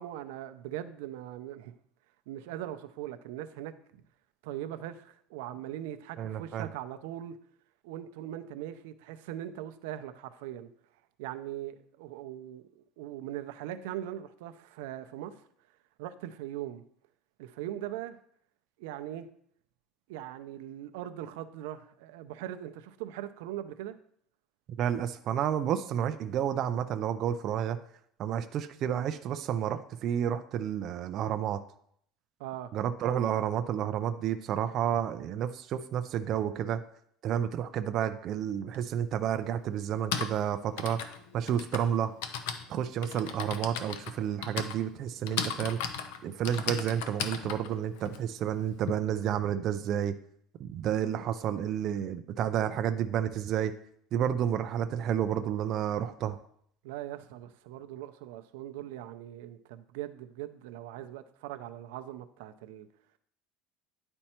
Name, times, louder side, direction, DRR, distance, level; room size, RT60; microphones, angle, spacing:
voice 1, 0.0-1.7 2.3-3.7 4.4-7.4 7.8-10.7 11.2-15.4 16.0-16.8 17.4-18.2 18.8-19.3 20.1-24.0 32.4-32.7 56.8-62.9, right 12 dB, 90° right, 0.5 m, -40 dB
voice 2, 6.2-6.7 24.8-27.8 28.2-31.6 32.7-36.8 37.2-41.0 41.3-42.1 42.7-45.8 46.2-50.2 50.6-53.7 54.1-56.4, right 9 dB, 35° right, 0.4 m, -30 dB
Typing, 38.7-38.8 39.8-48.9, left 7 dB, 80° left, 0.7 m, -37 dB
10.0 x 4.4 x 4.4 m
cardioid pair, 175°, 0 cm